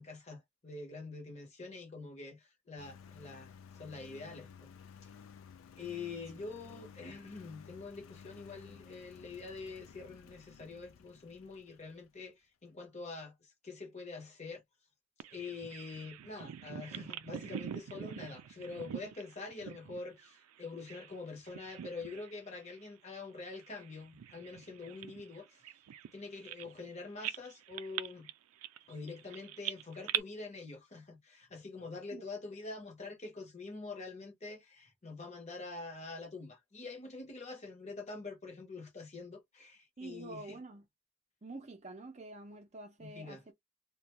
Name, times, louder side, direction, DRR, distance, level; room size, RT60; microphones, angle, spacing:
voice 1, 0.0-3.5 3.8-4.7 5.8-13.3 13.6-14.6 15.3-25.5 26.1-28.3 28.9-40.6 43.0-43.5, left 3 dB, 30° left, 0.8 m, -45 dB
Engine, 2.8-12.2, left 7 dB, 65° left, 0.3 m, -55 dB
Bird vocalization bird call bird song, 15.2-21.2 21.4-22.3 22.7-22.9 23.5-26.9 27.2-30.2, right 11 dB, 85° right, 0.3 m, -43 dB
voice 2, 40.0-40.9 41.4-43.5, right 2 dB, 30° right, 0.5 m, -47 dB
2.5 x 2.2 x 3.0 m
head